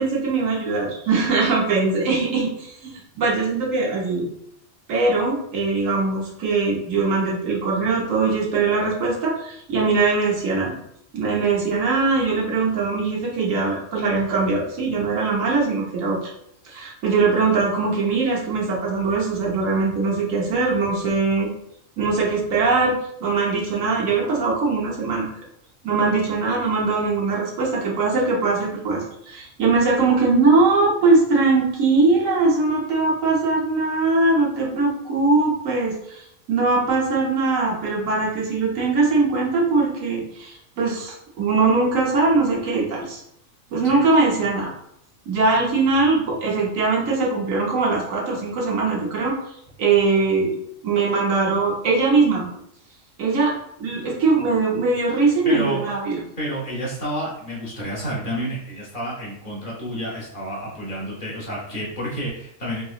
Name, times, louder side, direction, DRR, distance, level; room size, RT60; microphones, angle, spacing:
voice 1, 0.0-4.3 4.9-10.8 11.1-16.2 16.6-21.5 22.0-25.3 25.8-43.2 43.7-44.7 45.3-49.4 49.8-50.6 50.8-52.5 53.2-53.5 53.8-56.2, right 3 dB, 90° right, -3 dB, 1.3 m, -21 dB
voice 2, 55.4-55.8 56.4-62.8, equal, 45° left, -4 dB, 1.0 m, -30 dB
3.6 x 2.8 x 2.4 m, 0.75 s
omnidirectional pair, 1.3 m